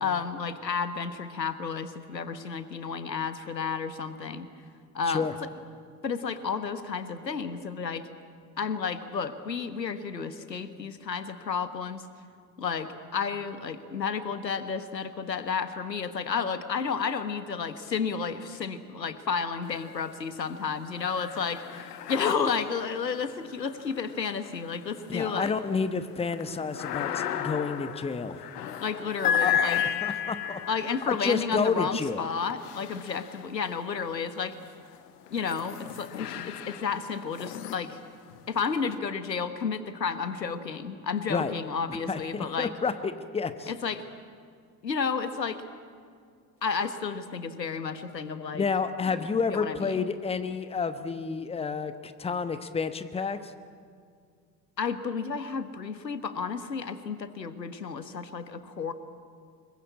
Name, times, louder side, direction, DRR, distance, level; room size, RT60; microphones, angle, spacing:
voice 1, 0.0-4.5 4.9-5.3 6.0-8.1 8.6-12.0 12.6-25.5 28.8-29.8 30.7-34.5 35.3-38.0 38.5-42.7 43.7-44.0 44.8-45.6 46.6-48.6 49.2-50.1 54.8-58.9, left 5 dB, 80° left, 11 dB, 1.4 m, -32 dB
sound 1, 19.6-20.3 20.7-33.8 34.5-38.9, left 9 dB, 65° left, 1.3 m, -34 dB
voice 2, 25.1-28.4 29.4-29.6 30.0-30.6 31.1-32.2 41.3-41.5 41.9-43.7 48.5-53.5, left 5 dB, 10° left, 11 dB, 1.1 m, -30 dB
25.0 x 22.0 x 8.5 m, 2.2 s
figure-of-eight pair, 70°, 49 cm